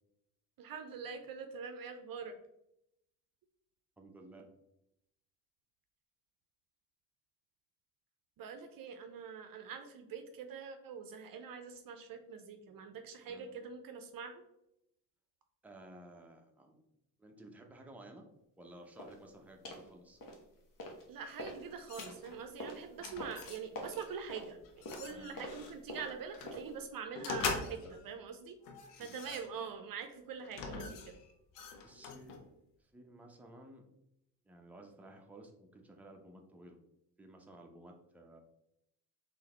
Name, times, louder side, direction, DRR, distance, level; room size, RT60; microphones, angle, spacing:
voice 1, 0.6-2.4 8.4-14.4 21.1-28.6 29.0-31.1, right 6 dB, 50° right, 7 dB, 0.6 m, -44 dB
voice 2, 4.0-4.5 13.3-13.5 15.6-16.8 17.2-18.3 18.6-20.2 25.1-25.3 27.8-28.0 29.0-29.1 31.8-32.4 32.8-33.9 34.5-36.8 37.2-38.4, right 1 dB, 5° right, 2 dB, 0.7 m, -55 dB
footsteps shoes walk road asphalt hard, 19.0-19.2 19.6-19.9 20.2-21.0 21.3-26.9, left 1 dB, 45° left, 1.2 m, -46 dB
sound 1, 21.9-22.4 23.0-23.7 23.9-24.2 24.6-25.7 26.3-26.5 27.1-28.1 28.6-29.8 30.4-32.5, left 5 dB, 85° left, 0.7 m, -42 dB
3.8 x 3.3 x 2.9 m, 0.82 s
hypercardioid pair, 60°, 46 cm